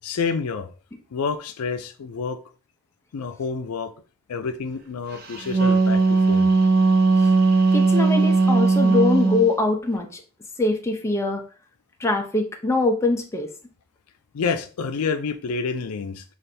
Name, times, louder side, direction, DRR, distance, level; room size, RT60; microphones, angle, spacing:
voice 1, 0.0-0.7 1.1-2.4 3.1-3.9 4.3-6.5 14.3-16.2, left 5 dB, 90° left, 8 dB, 0.5 m, -28 dB
Wind instrument woodwind instrument, 5.3-9.5, right 3 dB, 45° right, 0.7 m, -18 dB
voice 2, 7.7-10.2 10.6-11.4 12.0-13.5, left 3 dB, 15° left, 3 dB, 0.5 m, -23 dB
3.3 x 2.5 x 4.1 m, 0.37 s
head